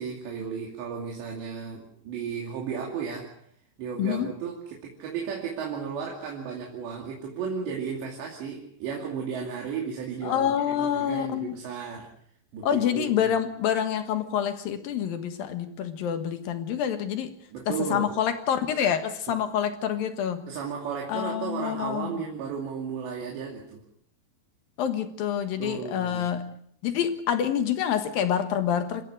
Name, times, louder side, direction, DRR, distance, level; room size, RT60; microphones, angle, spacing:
voice 1, 0.0-3.4 3.8-12.1 12.5-13.3 17.5-18.1 20.5-23.8 25.6-26.3, right 6 dB, 85° right, -1 dB, 4.9 m, -34 dB
voice 2, 4.0-4.3 10.2-11.6 12.6-17.4 17.7-20.5 21.1-22.2 24.8-26.5 26.8-29.0, left 9 dB, 65° left, 8 dB, 2.9 m, -27 dB
28.0 x 16.0 x 6.6 m, 0.67 s
omnidirectional pair, 4.9 m